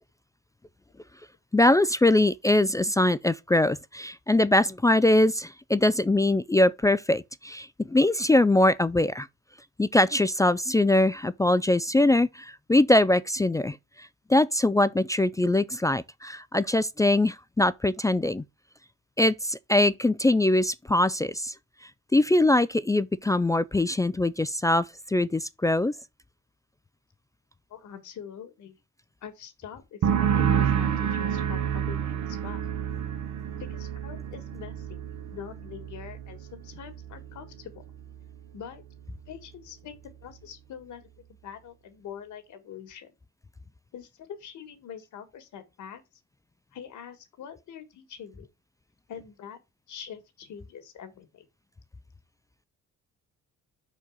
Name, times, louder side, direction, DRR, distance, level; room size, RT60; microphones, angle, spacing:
voice 1, 1.5-9.3 9.8-18.4 19.2-21.5 22.1-25.9, left 1 dB, 10° left, 0.3 m, -22 dB
voice 2, 27.7-28.8 29.2-32.6 33.6-35.0 35.3-37.8 38.5-38.8 39.3-39.9 40.2-43.1 43.9-46.0 46.7-48.5 49.1-49.6 49.9-51.5, left 8 dB, 75° left, 1.7 m, -44 dB
sound 1, 30.0-37.5 37.8-38.3, right 8 dB, 65° right, 1.0 m, -29 dB
5.4 x 4.6 x 6.2 m
cardioid pair, 90°, 30 cm